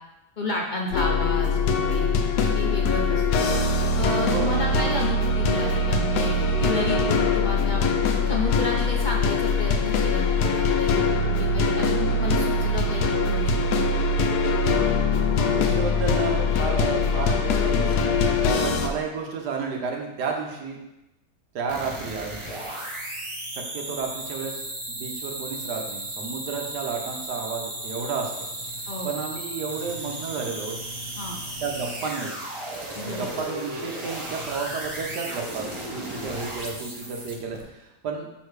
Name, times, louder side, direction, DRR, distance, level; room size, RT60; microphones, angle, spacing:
voice 1, 0.4-2.2 2.5-3.4 3.8-7.8 8.3-11.0 11.3-14.0 28.9-29.1 31.2-31.4 32.9-33.3, left 2 dB, 45° left, -1 dB, 0.6 m, -31 dB
sound 1, 0.9-18.9, left 3 dB, 80° left, 1.2 m, -22 dB
voice 2, 4.2-4.5 15.4-20.8 21.5-22.4 23.5-28.5 28.8-30.9 31.6-32.4 33.0-38.3, right 5 dB, 80° right, 1 dB, 1.6 m, -32 dB
sound 2, 21.7-37.6, right 1 dB, 25° right, 0.8 m, -35 dB
6.6 x 3.8 x 4.7 m, 0.94 s
omnidirectional pair, 1.7 m